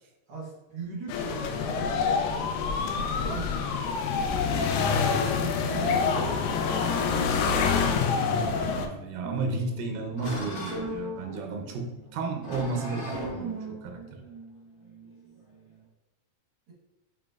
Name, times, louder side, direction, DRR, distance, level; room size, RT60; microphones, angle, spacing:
voice 1, 0.3-4.4 4.9-7.1, right 3 dB, 65° right, -5 dB, 1.5 m, -39 dB
sound 1, 1.1-8.9, left 5 dB, 90° left, 2.3 m, -26 dB
sound 2, 4.2-13.3, left 5 dB, 75° left, 2.1 m, -44 dB
voice 2, 4.9-5.3 8.2-14.2, right 3 dB, 85° right, 3 dB, 2.3 m, -33 dB
sound 3, 9.2-15.8, right 1 dB, 50° left, 1.0 m, -38 dB
6.9 x 3.1 x 2.3 m, 1.0 s
omnidirectional pair, 3.9 m